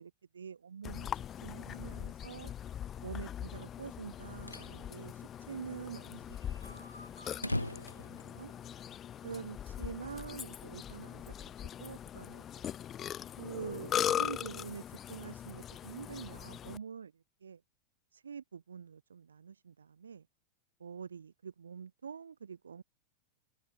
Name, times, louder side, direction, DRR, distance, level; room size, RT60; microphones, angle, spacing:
voice 1, 0.0-2.5 3.0-8.5 9.2-12.4 13.4-17.6 18.1-20.3 20.8-22.8, right 6 dB, 70° right, 3.5 m, -46 dB
Burping eructation, 0.8-16.8, left 10 dB, 25° left, 0.8 m, -40 dB
sound 1, 4.3-4.7 5.1-5.2 5.4-5.5 5.9-9.0, left 1 dB, 85° left, 0.7 m, -40 dB
figure-of-eight pair, 90°, 0 cm